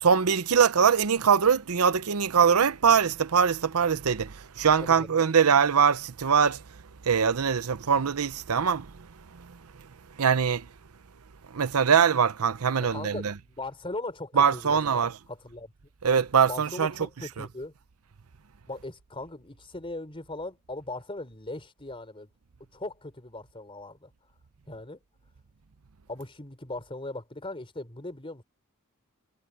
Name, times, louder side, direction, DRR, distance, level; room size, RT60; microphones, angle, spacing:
voice 1, 0.0-6.6 7.0-8.9 9.4-9.6 10.2-10.7 11.5-13.3 14.4-15.2 16.0-16.9 17.4-17.5, right 6 dB, 75° right, 0.7 m, -22 dB
voice 2, 12.8-15.7 16.5-17.7 18.7-22.3 22.7-24.1 24.7-25.0 26.1-28.4, left 2 dB, 25° left, 3.9 m, -39 dB
head